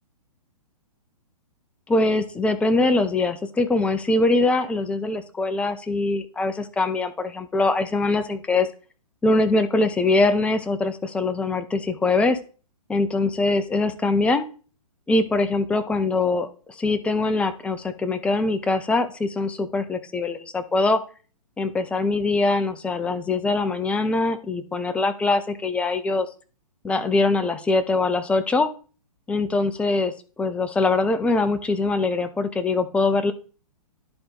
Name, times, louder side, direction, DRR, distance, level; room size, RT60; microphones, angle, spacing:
voice 1, 1.9-8.7 9.2-12.4 12.9-14.5 15.1-16.5 16.8-21.0 21.6-26.3 26.8-28.7 29.3-30.1 30.4-33.3, left 3 dB, 5° left, 9 dB, 0.5 m, -22 dB
11.0 x 4.1 x 3.8 m, 0.38 s
figure-of-eight pair, 125°, 20 cm